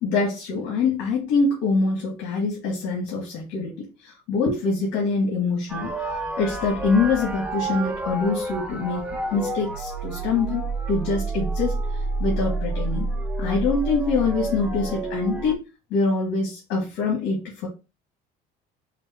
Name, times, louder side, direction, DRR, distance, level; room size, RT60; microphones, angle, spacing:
voice 1, 0.0-3.7 4.0-5.9 6.4-9.0 9.3-11.7 12.2-13.1 13.4-15.6 15.9-17.7, left 4 dB, 75° left, -1 dB, 1.6 m, -24 dB
sound 1, 5.7-15.5, right 2 dB, 5° right, 0.7 m, -29 dB
5.1 x 2.1 x 4.1 m, 0.29 s
cardioid pair, 125°, 18 cm